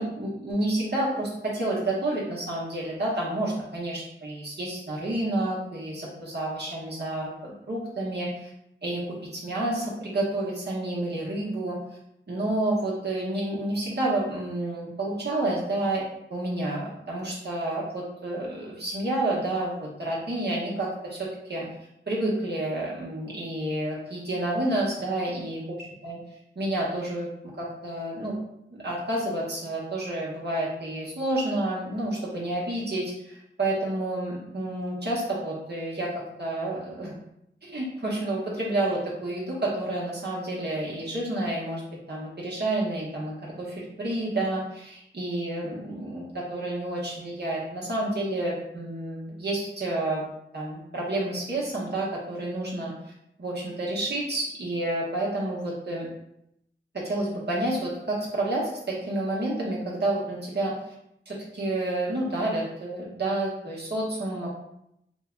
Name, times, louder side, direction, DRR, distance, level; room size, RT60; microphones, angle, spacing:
voice 1, 0.0-8.5 8.8-11.8 12.3-16.0 16.3-21.7 22.1-25.6 26.0-26.2 26.5-28.4 28.7-36.1 36.4-37.2 37.6-41.8 42.1-50.2 50.5-52.9 53.4-56.1 56.9-60.7 61.3-64.5, right 1 dB, 55° right, -5 dB, 1.0 m, -29 dB
2.7 x 2.2 x 3.7 m, 0.79 s
cardioid pair, 40°, 21 cm